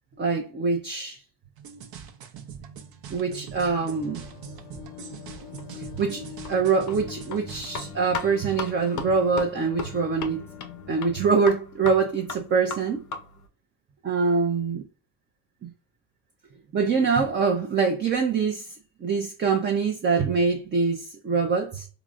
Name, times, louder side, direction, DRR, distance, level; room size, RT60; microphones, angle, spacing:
voice 1, 0.2-1.2 3.1-4.2 5.7-10.4 10.9-13.0 14.0-14.8 15.6-15.7 16.7-18.7 19.0-21.9, right 5 dB, 25° right, 0.5 m, -24 dB
sound 1, 1.6-7.9, right 7 dB, 60° right, 0.7 m, -42 dB
sound 2, 3.9-11.3, left 7 dB, 85° left, 0.9 m, -44 dB
sound 3, 5.4-13.5, left 5 dB, 45° left, 0.6 m, -39 dB
3.8 x 2.0 x 2.4 m
supercardioid pair, 85°, 41 cm